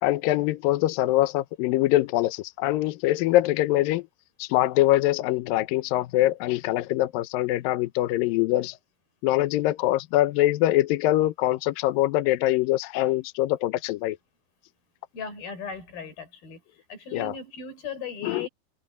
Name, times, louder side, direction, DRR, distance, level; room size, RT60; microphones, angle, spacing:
voice 1, 0.0-4.0 4.4-8.8 9.2-14.2 17.1-17.3 18.2-18.5, left 15 dB, 80° left, 2.1 m, -23 dB
voice 2, 15.1-16.6 16.9-18.5, left 5 dB, 60° left, 6.7 m, -37 dB
omnidirectional pair, 4.7 m